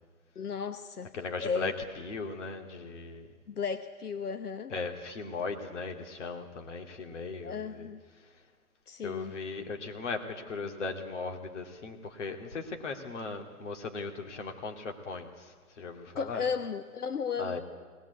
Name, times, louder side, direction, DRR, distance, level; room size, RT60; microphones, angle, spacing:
voice 1, 0.4-1.1 1.4-1.7 3.5-4.7 7.4-8.0 8.9-9.3 16.2-17.6, left 6 dB, 85° left, 10 dB, 1.1 m, -34 dB
voice 2, 1.1-3.3 4.7-7.9 8.2-8.4 9.0-16.4 17.4-17.6, left 4 dB, 50° left, 5 dB, 2.7 m, -38 dB
20.0 x 19.0 x 8.3 m, 1.5 s
hypercardioid pair, 155°, 44 cm